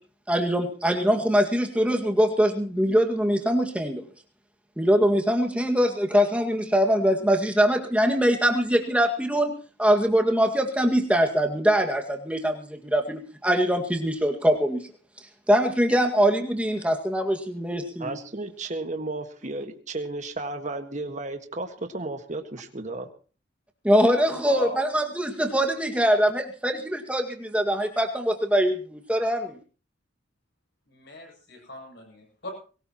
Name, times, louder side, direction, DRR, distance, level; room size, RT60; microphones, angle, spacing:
voice 1, 0.3-4.0 4.8-9.5 9.8-14.8 15.5-18.2 23.8-29.6, equal, 5° right, 3 dB, 1.9 m, -23 dB
voice 2, 18.0-23.1, right 2 dB, 40° right, 6 dB, 1.6 m, -33 dB
voice 3, 24.2-25.0 30.9-32.5, left 2 dB, 60° left, 2 dB, 7.5 m, -40 dB
22.0 x 19.0 x 3.0 m, 0.39 s
head